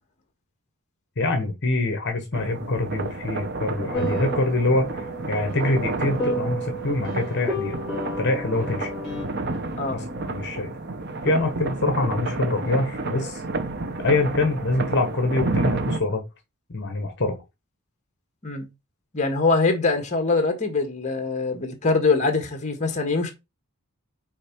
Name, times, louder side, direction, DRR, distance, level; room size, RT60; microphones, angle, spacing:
voice 1, 1.2-7.8 8.2-8.9 9.9-10.8 11.2-13.4 14.0-16.2 16.7-17.4, left 2 dB, 55° left, 1.1 m, -25 dB
sound 1, 2.3-16.0, right 3 dB, 50° right, 0.9 m, -30 dB
sound 2, 3.9-9.2, equal, ahead, 3.7 m, -32 dB
voice 2, 19.1-23.3, left 3 dB, 35° left, 1.6 m, -23 dB
6.4 x 4.3 x 4.5 m
head